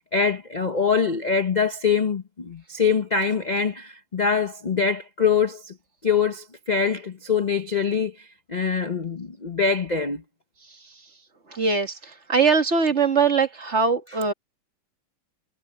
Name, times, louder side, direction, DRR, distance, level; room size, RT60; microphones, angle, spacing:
voice 1, 0.1-5.7 6.0-10.2, left 5 dB, 45° left, 0.5 m, -24 dB
voice 2, 11.5-11.9 12.3-14.3, right 5 dB, 35° right, 1.9 m, -21 dB
omnidirectional pair, 2.3 m